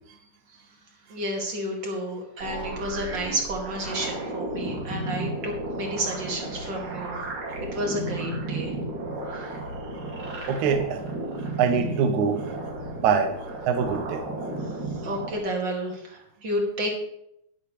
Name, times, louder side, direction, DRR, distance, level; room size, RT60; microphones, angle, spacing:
voice 1, 1.1-7.2 7.7-8.7 9.3-9.5 15.0-16.9, right 1 dB, 40° right, 0 dB, 2.8 m, -31 dB
sound 1, 2.4-15.4, right 2 dB, 90° right, 4.1 m, -33 dB
voice 2, 10.5-11.0 11.6-12.4 13.0-13.3 13.6-14.2, right 6 dB, 75° right, 6 dB, 2.4 m, -23 dB
12.0 x 11.5 x 3.3 m, 0.74 s
omnidirectional pair, 3.5 m